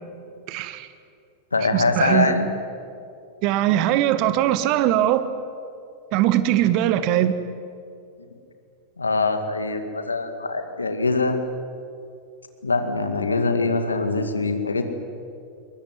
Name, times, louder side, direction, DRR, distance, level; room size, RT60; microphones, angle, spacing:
voice 1, 0.5-0.9 1.7-2.3 3.4-5.3 6.1-7.3, right 12 dB, 45° right, 12 dB, 1.5 m, -21 dB
voice 2, 1.5-2.5 9.0-11.4 12.6-14.8, left 3 dB, 80° left, 8 dB, 2.1 m, -23 dB
22.5 x 22.0 x 9.5 m, 2.5 s
figure-of-eight pair, 90°, 0 cm